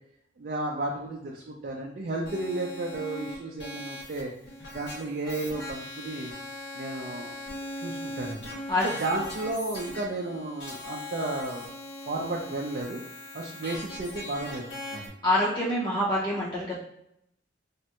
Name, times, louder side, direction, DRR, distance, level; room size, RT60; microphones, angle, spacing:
voice 1, 0.4-4.3 4.7-6.3 6.7-8.5 8.8-11.7 12.1-13.0 13.3-14.6 14.9-15.2, right 2 dB, 50° right, -1 dB, 0.4 m, -33 dB
sound 1, 2.3-15.1, left 1 dB, 70° left, 1.0 m, -40 dB
voice 2, 15.2-16.7, left 1 dB, 25° left, -7 dB, 0.6 m, -26 dB
3.4 x 2.1 x 2.8 m, 0.76 s
head